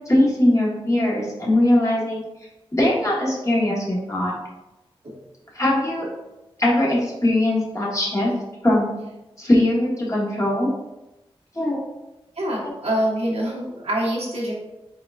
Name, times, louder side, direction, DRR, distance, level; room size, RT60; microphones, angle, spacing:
voice 1, 0.1-2.2 2.7-4.3 5.5-6.1 6.6-8.3 8.6-8.9 9.4-10.7 11.5-11.8 12.6-12.7, left 1 dB, 30° left, -5 dB, 1.4 m, -20 dB
voice 2, 12.4-14.5, right 1 dB, 80° right, -5 dB, 1.3 m, -25 dB
4.7 x 3.7 x 2.5 m, 1.0 s
wide cardioid pair, 65°, 10 cm